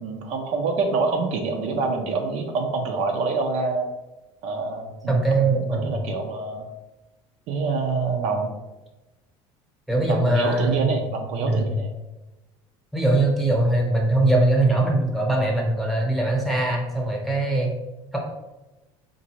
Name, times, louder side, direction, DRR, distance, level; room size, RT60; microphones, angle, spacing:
voice 1, 0.0-3.9 4.4-5.2 5.6-6.7 7.5-8.5 10.1-11.9, right 4 dB, 65° right, 3 dB, 0.5 m, -26 dB
voice 2, 5.1-5.9 9.9-10.9 11.4-11.7 12.9-17.7 18.1-18.2, right 2 dB, ahead, -2 dB, 0.9 m, -21 dB
3.9 x 2.6 x 2.9 m, 1.1 s
supercardioid pair, 110°, 12 cm